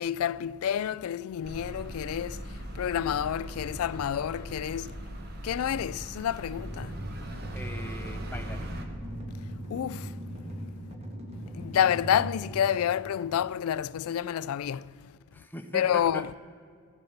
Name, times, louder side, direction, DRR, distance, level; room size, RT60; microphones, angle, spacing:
voice 1, 0.0-5.1 5.4-7.0 9.7-10.4 11.5-15.1 15.7-16.3, left 9 dB, 70° left, 0.3 m, -29 dB
sound 1, 1.4-8.9, equal, 45° right, 1.2 m, -40 dB
sound 2, 6.5-13.4, right 1 dB, 30° right, 1.6 m, -39 dB
voice 2, 7.5-8.8 15.3-16.3, left 1 dB, 10° left, 0.9 m, -40 dB
14.5 x 7.9 x 7.2 m
head